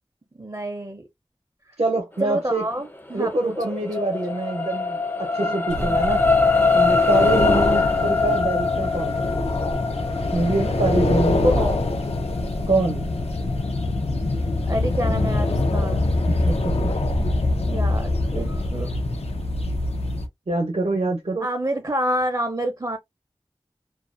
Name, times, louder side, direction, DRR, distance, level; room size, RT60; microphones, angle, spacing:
voice 1, 0.4-1.0 2.2-3.7 5.4-5.9 7.3-7.8 11.3-11.8 14.7-16.0 17.2-17.3 17.6-18.9 21.4-23.0, right 1 dB, 35° right, 0.5 m, -28 dB
voice 2, 1.8-2.6 3.1-6.2 6.7-9.3 10.3-11.4 12.7-13.1 16.3-16.6 20.5-21.5, right 2 dB, 85° right, 0.7 m, -25 dB
sound 1, 3.1-15.6 16.2-16.3, left 4 dB, 20° left, 0.4 m, -24 dB
sound 2, 5.7-20.3, left 2 dB, 90° left, 0.5 m, -24 dB
2.4 x 2.0 x 2.4 m
wide cardioid pair, 50°, 10 cm